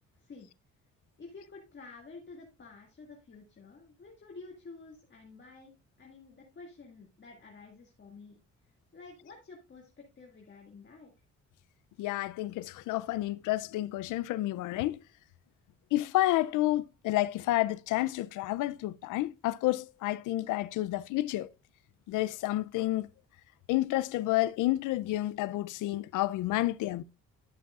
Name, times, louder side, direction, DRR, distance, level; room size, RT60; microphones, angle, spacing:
voice 1, 0.2-0.5 1.2-8.4 8.9-11.1, left 4 dB, 40° left, 2.1 m, -50 dB
voice 2, 12.0-15.0 15.9-21.5 22.1-23.1 23.7-27.0, left 16 dB, 85° left, 0.5 m, -30 dB
12.0 x 7.2 x 2.4 m
cardioid pair, 90°, 30 cm